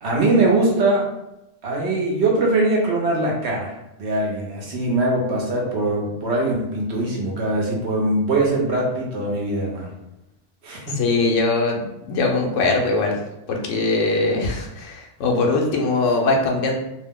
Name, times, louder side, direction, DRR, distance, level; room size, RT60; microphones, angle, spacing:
voice 1, 0.0-1.1 1.6-9.9 10.6-11.0, right 2 dB, 65° right, -2 dB, 1.0 m, -22 dB
voice 2, 10.9-13.2 13.5-16.7, left 3 dB, 80° left, 1 dB, 1.0 m, -21 dB
2.8 x 2.0 x 3.6 m, 0.89 s
omnidirectional pair, 1.3 m